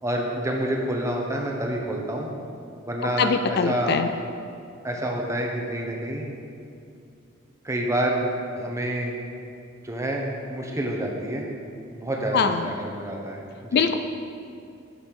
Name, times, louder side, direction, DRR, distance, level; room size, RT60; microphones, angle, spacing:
voice 1, 0.0-2.3 2.9-3.9 4.8-6.2 7.6-8.3 8.6-9.1 9.8-11.5 11.9-13.8, right 1 dB, 15° right, 0 dB, 1.0 m, -28 dB
voice 2, 3.0-4.1 12.3-12.7 13.7-14.0, left 5 dB, 50° left, 8 dB, 0.4 m, -22 dB
8.3 x 5.4 x 5.9 m, 2.5 s
head